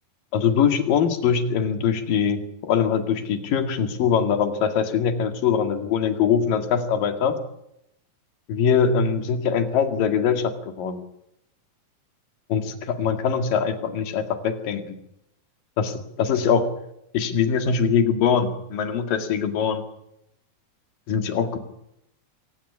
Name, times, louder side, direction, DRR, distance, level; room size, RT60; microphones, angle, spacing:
voice 1, 0.3-7.4 8.5-11.0 12.5-15.0 15.8-16.7 17.1-19.8 21.1-21.6, left 7 dB, 70° left, 7 dB, 3.7 m, -22 dB
24.5 x 17.0 x 9.9 m, 0.81 s
omnidirectional pair, 4.2 m